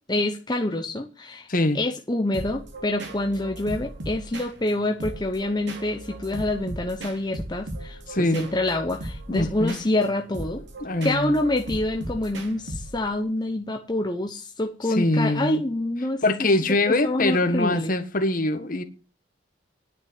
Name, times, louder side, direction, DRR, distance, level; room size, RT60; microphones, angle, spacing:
voice 1, 0.1-1.5 1.7-10.6 11.0-16.2 16.9-17.9, left 1 dB, 20° left, 0.9 m, -26 dB
sound 1, 2.3-13.2, right 1 dB, 65° right, 2.8 m, -37 dB
voice 2, 8.1-8.4 9.3-9.8 10.8-11.3 15.0-15.6 16.2-18.8, left 2 dB, 45° left, 1.5 m, -23 dB
10.5 x 6.6 x 9.1 m
head